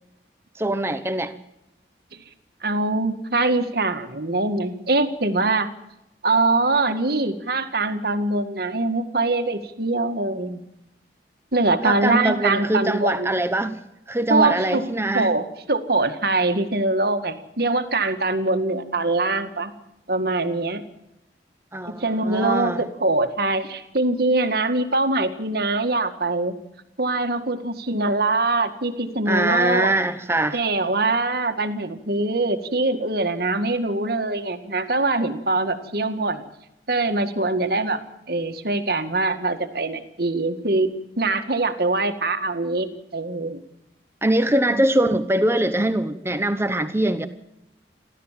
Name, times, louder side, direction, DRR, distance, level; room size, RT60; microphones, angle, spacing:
voice 1, 0.5-1.4 11.8-13.8 14.1-15.3 21.7-22.8 29.3-30.6 44.2-47.3, right 1 dB, 15° right, 10 dB, 1.0 m, -22 dB
voice 2, 2.6-5.7 6.2-10.6 11.5-13.3 14.3-14.8 15.1-19.7 20.1-20.8 22.0-26.5 27.0-29.9 30.5-36.4 36.9-38.0 38.3-40.9 41.2-42.9 43.1-43.6, right 2 dB, 60° right, 8 dB, 2.0 m, -23 dB
29.0 x 13.0 x 7.5 m, 0.89 s
head